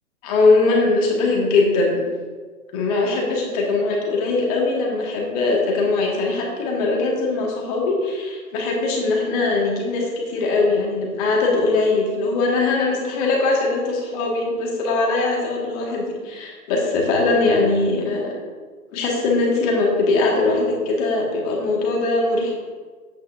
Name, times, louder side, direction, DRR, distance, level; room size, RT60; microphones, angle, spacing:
voice 1, 0.2-2.0 2.7-18.3 18.9-22.5, left 3 dB, 25° left, -2 dB, 2.0 m, -21 dB
11.0 x 8.7 x 2.7 m, 1.5 s
figure-of-eight pair, 125°, 44 cm